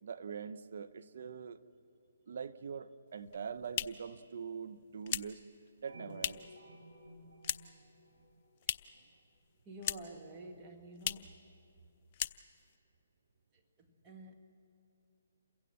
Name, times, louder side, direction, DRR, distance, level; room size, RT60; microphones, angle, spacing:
voice 1, 0.0-1.6 2.3-5.4 5.8-6.4, right 6 dB, 60° right, 0.8 m, -43 dB
sound 1, 3.2-6.6 6.9-7.9 8.1-9.1 9.3-10.3 10.5-10.6 11.0-11.4 11.7-11.9 12.1-12.8, left 10 dB, 40° left, 0.5 m, -39 dB
sound 2, 5.9-9.0, equal, 75° right, 6.2 m, -55 dB
voice 2, 9.6-11.4 13.5-14.3, right 1 dB, 25° right, 1.6 m, -50 dB
28.0 x 16.0 x 7.5 m
figure-of-eight pair, 140°, 0 cm